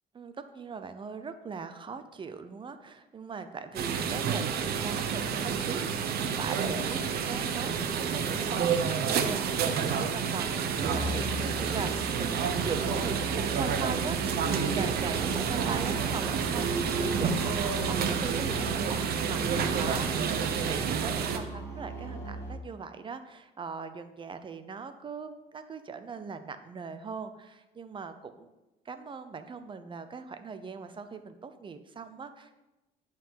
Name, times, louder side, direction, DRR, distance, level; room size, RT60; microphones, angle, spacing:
voice 1, 0.1-5.8 6.3-8.7 9.1-19.0 19.3-28.5 28.9-32.6, right 5 dB, 30° right, 10 dB, 0.8 m, -40 dB
sound 1, 3.7-21.4, right 6 dB, 65° right, 0.9 m, -29 dB
sound 2, 10.8-22.5, right 2 dB, 15° left, 2.6 m, -38 dB
9.4 x 5.9 x 4.8 m, 1.0 s
cardioid pair, 110°, 17 cm